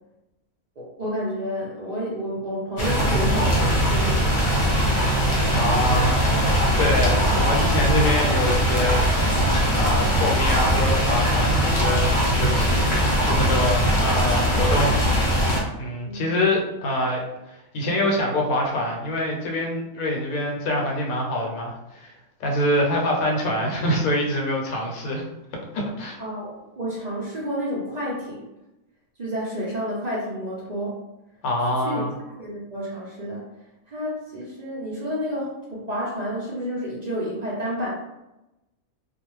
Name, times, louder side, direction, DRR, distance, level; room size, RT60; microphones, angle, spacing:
voice 1, 0.8-4.2 7.0-7.3 16.0-16.4 26.2-28.5 29.2-31.0 31.8-32.0 32.4-33.4 33.9-37.9, equal, 65° right, -6 dB, 0.4 m, -30 dB
sound 1, 2.8-15.6, equal, 40° left, 0.8 m, -21 dB
voice 2, 5.5-6.3 6.8-9.1 9.7-15.1 15.8-17.2 17.5-22.1 22.4-25.2 25.7-26.2 31.4-32.1, left 1 dB, 75° left, -1 dB, 1.1 m, -25 dB
2.4 x 2.1 x 3.0 m, 0.95 s
omnidirectional pair, 1.6 m